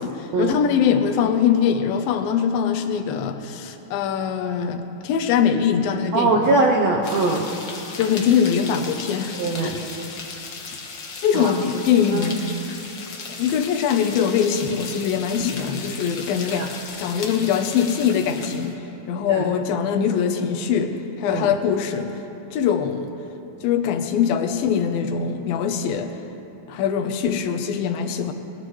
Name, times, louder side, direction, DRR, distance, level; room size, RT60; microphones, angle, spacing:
voice 1, 0.0-6.6 8.0-9.8 11.2-12.4 13.4-16.7 17.0-18.8 19.1-22.1 22.5-23.2 23.6-26.1 26.7-28.3, left 7 dB, 90° left, 7 dB, 2.7 m, -22 dB
voice 2, 6.1-7.5 9.4-9.8 11.3-11.5 12.1-12.3 16.5-16.7 19.3-19.5 21.3-21.5, right 3 dB, 70° right, 0 dB, 1.6 m, -21 dB
sound 1, 7.0-18.7, left 4 dB, 55° left, 1.3 m, -36 dB
21.0 x 20.0 x 3.2 m, 2.9 s
omnidirectional pair, 4.0 m